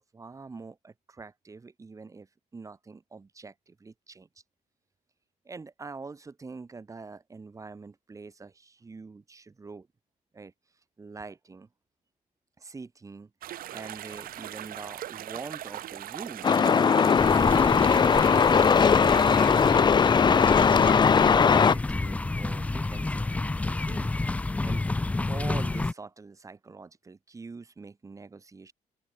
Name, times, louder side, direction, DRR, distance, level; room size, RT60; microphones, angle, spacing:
voice 1, 0.0-2.3 2.5-4.3 5.4-9.9 10.3-10.5 11.0-11.7 12.6-13.3 13.7-20.6 21.2-24.1 24.6-24.8 25.2-28.7, right 4 dB, 20° right, 4.9 m, -44 dB
sound 1, 13.4-19.7, right 13 dB, 85° right, 4.5 m, -39 dB
Truck, 16.4-21.7, left 6 dB, 30° left, 0.9 m, -20 dB
sound 2, 17.2-25.9, left 2 dB, 10° left, 0.3 m, -30 dB
open air
cardioid pair, 155°, 15 cm